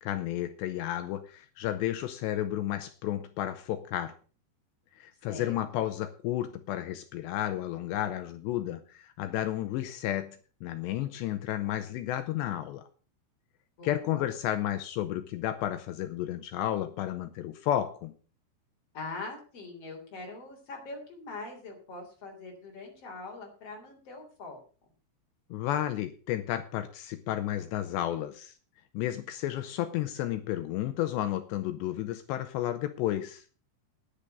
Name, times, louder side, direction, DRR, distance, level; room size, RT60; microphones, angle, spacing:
voice 1, 0.0-4.1 4.9-12.8 13.8-18.1 25.5-28.5 28.9-33.4, left 12 dB, 80° left, 10 dB, 2.7 m, -32 dB
voice 2, 5.3-5.8 13.8-14.3 18.9-24.6, left 3 dB, 35° left, 2 dB, 3.9 m, -42 dB
10.5 x 10.0 x 6.6 m, 0.39 s
omnidirectional pair, 5.5 m